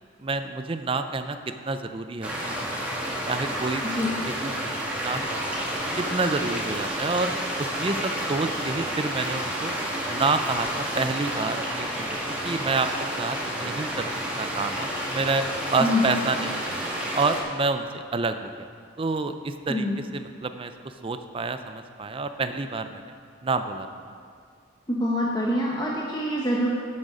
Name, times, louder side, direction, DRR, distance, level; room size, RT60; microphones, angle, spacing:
voice 1, 0.2-1.4 1.7-2.8 3.3-4.1 4.4-4.5 4.8-5.6 6.0-9.7 10.0-10.7 11.0-12.9 13.2-14.1 14.4-16.8 17.1-18.7 19.0-19.9 20.1-20.7 21.0-23.0 23.4-23.9, right 3 dB, 25° right, 9 dB, 0.5 m, -28 dB
sound 1, 2.2-17.4, equal, 5° right, 1.6 m, -30 dB
voice 2, 24.9-26.7, left 1 dB, 20° left, -4 dB, 0.9 m, -25 dB
14.0 x 6.4 x 5.0 m, 2.2 s
head